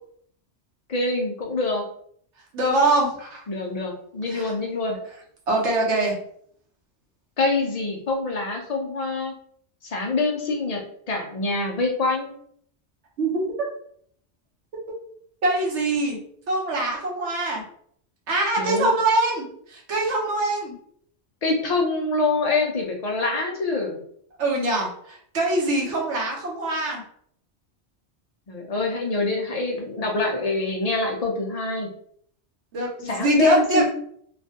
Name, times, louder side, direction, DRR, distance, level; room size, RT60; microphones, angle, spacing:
voice 1, 0.9-1.8 3.5-5.0 7.4-9.3 9.8-10.8 11.1-12.3 18.6-19.0 21.4-24.0 28.5-31.9 33.0-33.9, left 3 dB, 50° left, 1 dB, 0.5 m, -25 dB
voice 2, 2.5-3.4 4.3-4.5 5.5-6.1 13.2-13.4 15.4-16.2 16.5-17.6 18.3-19.5 19.7-20.7 24.4-27.0 32.7-33.8, right 2 dB, 85° right, -1 dB, 1.1 m, -23 dB
3.2 x 2.2 x 2.7 m, 0.64 s
omnidirectional pair, 1.2 m